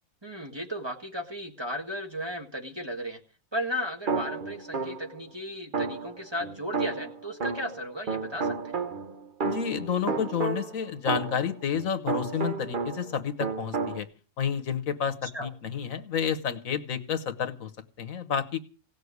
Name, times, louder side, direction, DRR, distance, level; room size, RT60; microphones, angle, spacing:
voice 1, 0.2-3.2 3.5-8.8 15.2-15.5, equal, 20° right, 3 dB, 1.6 m, -35 dB
sound 1, 4.1-5.2 5.7-7.8 8.1-13.1 13.4-14.0, right 4 dB, 40° right, 1.0 m, -32 dB
voice 2, 9.4-14.1 14.4-17.7 18.0-18.6, left 7 dB, 75° left, 9 dB, 1.5 m, -30 dB
17.0 x 6.6 x 9.5 m, 0.39 s
omnidirectional pair, 1.4 m